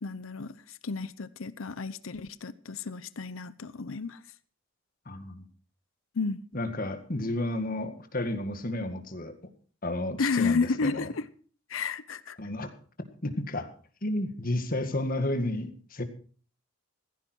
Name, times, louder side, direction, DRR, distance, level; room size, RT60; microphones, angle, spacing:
voice 1, 0.0-4.2 6.1-6.4 10.2-11.3 11.7-12.4, left 4 dB, 85° left, 0.8 m, -31 dB
voice 2, 5.1-5.4 6.5-9.5 9.8-11.1 12.4-12.7 13.2-13.7 14.0-16.0, left 1 dB, 45° left, 1.9 m, -32 dB
15.5 x 15.0 x 4.5 m
head